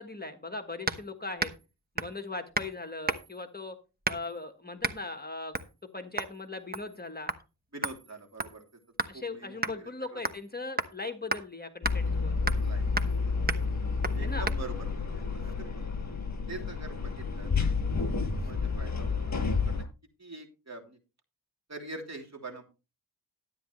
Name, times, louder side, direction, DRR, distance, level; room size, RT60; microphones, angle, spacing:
voice 1, 0.0-1.5 1.9-3.7 4.1-7.3 9.1-12.4 14.2-14.5, left 3 dB, 20° left, 6 dB, 1.4 m, -39 dB
sound 1, 0.9-1.1 1.4-1.7 2.0-2.2 2.5-2.7 3.1-3.4 4.0-4.4 4.8-5.0 5.5-5.7 6.2-6.4 6.7-7.0 7.3-7.4 7.8-9.2 9.6-9.8 10.3-10.5 10.8-10.9 11.3-11.4 11.8-12.0 12.5-12.7 13.0-13.2 13.5-13.7 14.0-14.2 14.5-14.6, right 2 dB, 20° right, 1.1 m, -33 dB
voice 2, 7.7-8.6 9.1-10.2 12.6-12.9 14.1-15.8 16.5-17.5 17.9-19.8 20.2-21.0 21.7-22.6, right 2 dB, 40° right, 2 dB, 3.1 m, -44 dB
sound 2, 11.8-19.8, left 4 dB, 40° left, 7.5 m, -30 dB
12.5 x 9.5 x 3.1 m, 0.30 s
wide cardioid pair, 75°, 43 cm